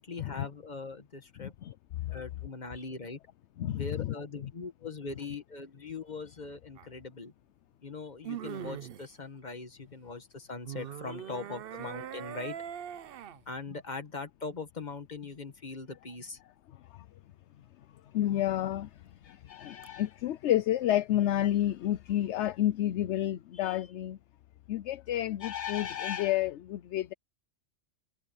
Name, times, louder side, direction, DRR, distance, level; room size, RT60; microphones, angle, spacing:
voice 1, 0.1-1.5 2.1-3.2 3.7-7.3 7.8-12.6 13.5-16.4, left 4 dB, 35° left, 1.8 m, -41 dB
voice 2, 1.4-2.2 3.6-4.1 4.4-4.5 16.9-17.0 18.1-18.9 19.2-24.2 24.7-27.1, left 12 dB, 65° left, 0.9 m, -30 dB
sound 1, 6.8-6.9 8.2-9.1 10.7-13.4 19.8-19.9, right 10 dB, 55° right, 0.7 m, -41 dB
omnidirectional pair, 1.3 m